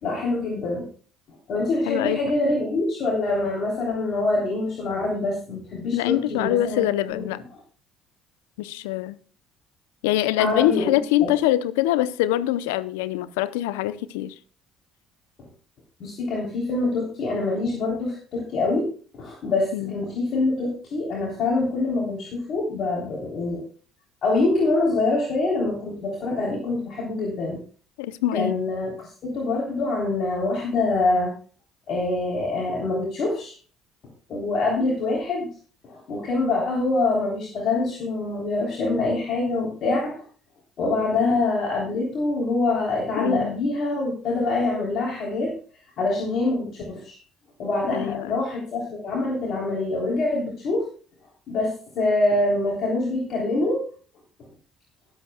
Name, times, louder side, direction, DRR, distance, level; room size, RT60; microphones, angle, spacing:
voice 1, 0.0-0.9 1.5-6.8 7.1-7.2 10.4-10.9 16.0-23.6 24.2-27.6 28.3-31.3 31.9-33.5 34.3-35.5 35.9-40.2 40.8-45.5 46.0-47.1 47.6-50.9 51.5-53.8, left 2 dB, 55° left, 3.3 m, -25 dB
voice 2, 1.9-2.2 5.9-7.4 8.6-9.2 10.0-14.3 19.7-20.0 28.0-28.5 43.2-43.5 47.9-48.4, left 14 dB, 85° left, 0.6 m, -24 dB
21.5 x 7.9 x 2.2 m
hypercardioid pair, 60°, 0 cm